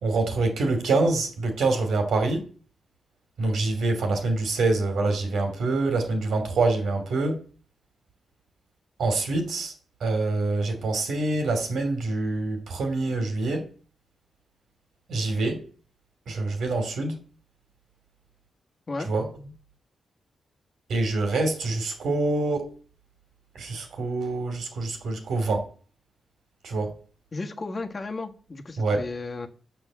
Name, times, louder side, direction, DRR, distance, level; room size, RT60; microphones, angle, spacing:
voice 1, 0.0-2.5 3.4-7.4 9.0-9.7 10.0-13.7 15.1-15.6 16.3-17.2 19.0-19.3 20.9-22.7 23.5-25.7 26.6-27.0 28.8-29.0, right 3 dB, 80° right, 2.6 m, -25 dB
voice 2, 27.3-29.5, left 3 dB, 35° left, 1.4 m, -34 dB
7.1 x 5.8 x 7.4 m
cardioid pair, 85°, 0 cm